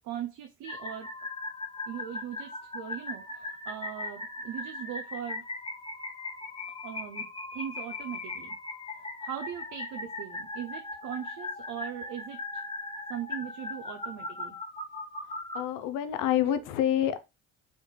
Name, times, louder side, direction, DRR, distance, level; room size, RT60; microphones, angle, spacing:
voice 1, 0.0-1.1 1.9-5.4 6.8-8.6 9.0-12.6 13.1-14.6 16.5-16.6, right 10 dB, 65° right, 0.7 m, -40 dB
sound 1, 0.6-15.6, left 2 dB, 20° left, 1.2 m, -39 dB
voice 2, 15.5-17.2, left 11 dB, 75° left, 0.7 m, -27 dB
4.1 x 3.1 x 3.2 m
supercardioid pair, 70°, 32 cm